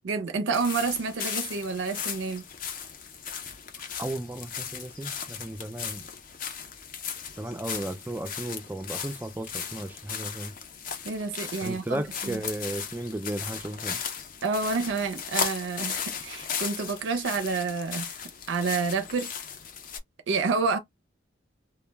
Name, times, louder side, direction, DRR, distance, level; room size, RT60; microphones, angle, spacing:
voice 1, 0.0-2.4 11.0-12.4 14.4-18.2 18.5-19.3 20.3-20.8, right 4 dB, 75° right, 0.4 m, -29 dB
sound 1, 0.5-20.0, left 7 dB, 45° left, 0.5 m, -36 dB
voice 2, 4.0-6.0 7.4-10.5 11.6-14.0, right 1 dB, 10° right, 0.3 m, -34 dB
2.1 x 2.1 x 3.3 m
head